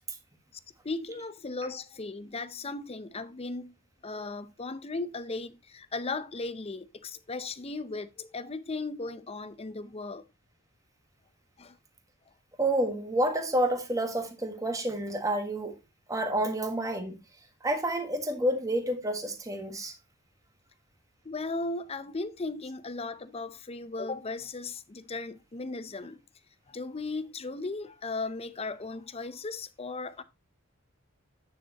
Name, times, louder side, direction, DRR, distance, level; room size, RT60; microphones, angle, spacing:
voice 1, 0.8-3.7 4.0-10.3 11.6-11.8 21.2-26.2 26.7-30.2, left 3 dB, 30° left, 0.6 m, -36 dB
voice 2, 12.6-15.7 16.1-17.2 17.6-19.9, right 1 dB, 15° right, 1.4 m, -29 dB
9.3 x 6.4 x 2.9 m
head